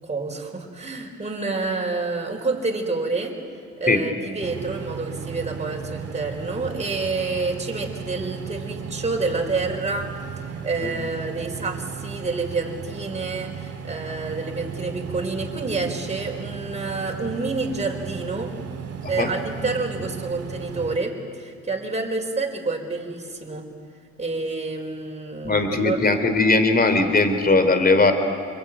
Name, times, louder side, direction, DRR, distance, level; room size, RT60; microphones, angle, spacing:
voice 1, 0.0-3.3 3.8-10.1 10.6-18.5 19.1-23.7 24.2-26.0, right 3 dB, 20° right, 1 dB, 4.8 m, -28 dB
sound 1, 4.4-21.0, right 7 dB, 55° right, 2.0 m, -35 dB
voice 2, 25.4-28.1, left 3 dB, 30° left, 8 dB, 3.2 m, -19 dB
27.5 x 22.0 x 9.5 m, 2.3 s
cardioid pair, 90°, 30 cm